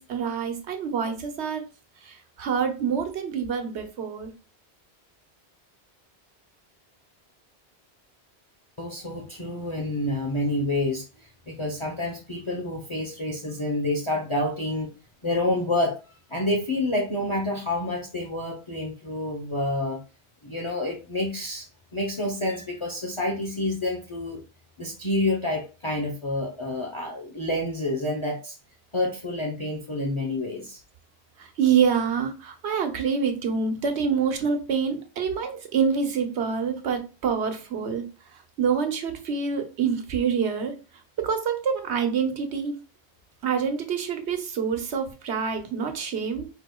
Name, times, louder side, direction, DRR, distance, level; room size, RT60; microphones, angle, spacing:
voice 1, 0.0-1.6 2.0-4.3 31.4-38.0 38.3-40.7 41.2-42.7 43.4-46.5, right 6 dB, 90° right, 1.2 m, -26 dB
voice 2, 8.8-14.9 15.2-16.0 16.3-20.0 20.4-21.7 21.9-24.4 24.8-28.6 28.9-30.8, left 1 dB, 30° left, 0.9 m, -28 dB
4.8 x 4.8 x 2.3 m
omnidirectional pair, 1.1 m